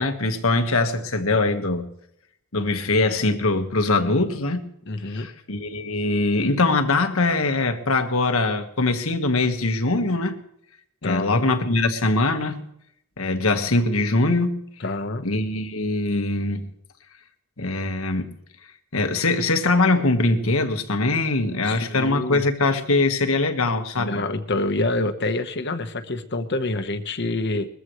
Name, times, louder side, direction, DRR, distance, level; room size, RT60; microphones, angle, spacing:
voice 1, 0.0-1.9 2.5-4.7 5.1-10.4 11.0-12.7 13.2-14.6 15.2-16.7 17.6-18.3 18.9-24.1, left 2 dB, 80° left, 1.6 m, -22 dB
voice 2, 4.9-5.3 11.0-11.5 14.8-15.2 21.6-22.4 24.0-27.7, left 2 dB, 55° left, 1.2 m, -27 dB
21.5 x 14.5 x 3.2 m
head